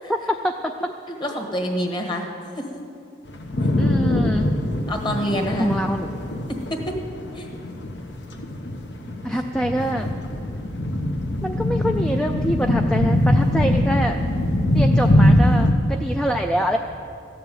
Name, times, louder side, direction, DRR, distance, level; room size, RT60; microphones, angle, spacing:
voice 1, 0.1-0.7 3.8-4.5 5.6-6.1 9.2-10.1 11.4-14.2 14.7-16.8, equal, 5° left, 3 dB, 0.3 m, -25 dB
voice 2, 1.1-2.3 2.5-2.8 3.6-3.7 4.9-5.7 6.5-6.8 7.3-7.5, equal, 25° left, 2 dB, 1.4 m, -27 dB
sound 1, 3.3-15.7, left 1 dB, 65° left, 1.1 m, -22 dB
14.5 x 6.8 x 9.2 m, 2.4 s
head